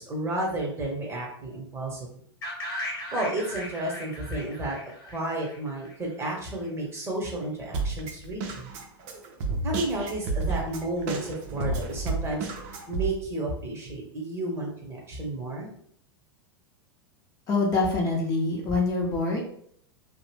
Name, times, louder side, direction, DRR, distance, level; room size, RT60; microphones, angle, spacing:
voice 1, 0.0-2.1 3.1-8.7 9.6-12.5 12.9-15.7, right 1 dB, 20° right, -1 dB, 0.9 m, -32 dB
sound 1, 2.4-6.3, left 1 dB, 55° left, 1.0 m, -37 dB
Drum kit, 7.7-13.1, right 3 dB, 45° right, 0.5 m, -31 dB
voice 2, 17.5-19.4, left 3 dB, 25° left, -2 dB, 0.7 m, -25 dB
2.6 x 2.0 x 3.2 m, 0.64 s
figure-of-eight pair, 90°, 13 cm